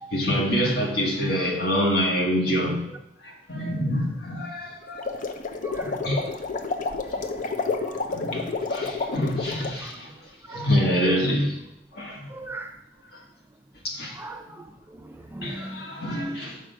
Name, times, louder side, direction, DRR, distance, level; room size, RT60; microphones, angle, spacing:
voice 1, 0.1-2.8 3.2-5.1 5.8-6.2 8.1-10.1 10.5-11.6 11.9-12.2 13.8-14.2 15.4-16.6, equal, 60° left, 1.6 m, -26 dB
sound 1, 4.9-9.8, left 4 dB, 45° left, 0.6 m, -30 dB
voice 2, 5.6-6.4 7.1-7.4 7.8-8.2 8.4-8.6 9.8-9.9 10.5-11.0 12.3-12.8 14.1-15.9, right 2 dB, 10° right, 0.4 m, -40 dB
6.2 x 5.3 x 4.6 m
head